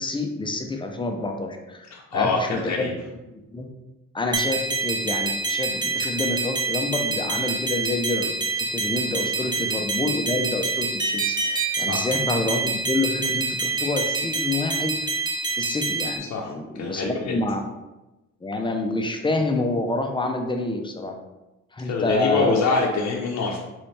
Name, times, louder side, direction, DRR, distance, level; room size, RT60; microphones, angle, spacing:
voice 1, 0.0-2.9 3.3-3.7 4.1-14.9 15.5-17.6 18.4-21.1 21.7-22.6, left 2 dB, 15° left, 4 dB, 0.5 m, -28 dB
voice 2, 1.9-2.9 9.4-9.5 11.9-12.1 16.3-17.3 21.8-23.6, left 4 dB, 60° left, -2 dB, 0.7 m, -25 dB
sound 1, 4.3-16.2, right 3 dB, 15° right, 0.7 m, -26 dB
4.1 x 3.2 x 3.2 m, 1.0 s
cardioid pair, 90°, 30 cm